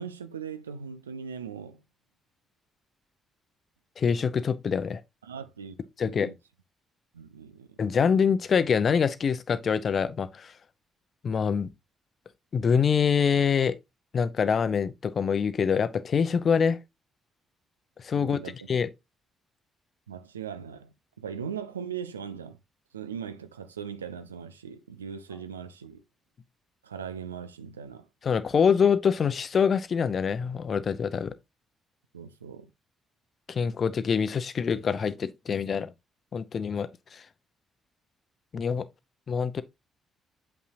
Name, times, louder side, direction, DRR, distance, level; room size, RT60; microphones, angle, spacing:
voice 1, 0.0-1.8 5.2-5.7 6.0-6.4 7.1-7.8 18.1-18.6 20.1-22.6 22.9-26.0 26.8-28.0 32.1-32.7, right 7 dB, 90° right, 0.4 m, -39 dB
voice 2, 4.0-5.0 6.0-6.3 7.8-10.5 11.2-11.7 12.5-13.8 14.1-16.8 18.0-18.4 18.7-18.9 28.2-31.3 33.5-35.9 36.3-37.2 38.5-38.8 39.3-39.6, left 6 dB, 50° left, 0.6 m, -25 dB
7.4 x 5.5 x 2.6 m
figure-of-eight pair, 45°, 0 cm